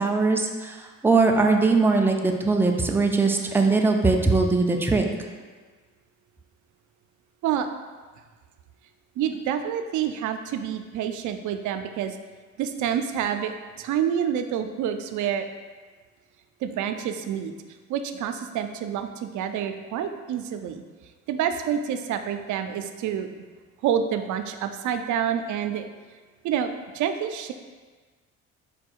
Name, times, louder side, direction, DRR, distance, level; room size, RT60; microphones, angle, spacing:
voice 1, 0.0-5.1, right 3 dB, 5° right, 2 dB, 0.4 m, -21 dB
voice 2, 9.2-12.2 12.6-13.5 13.8-15.4 16.6-17.5 17.9-20.8 21.3-23.4 23.8-25.9 26.4-27.5, right 9 dB, 75° right, 8 dB, 0.4 m, -28 dB
4.8 x 2.3 x 4.4 m, 1.4 s
cardioid pair, 90°, 30 cm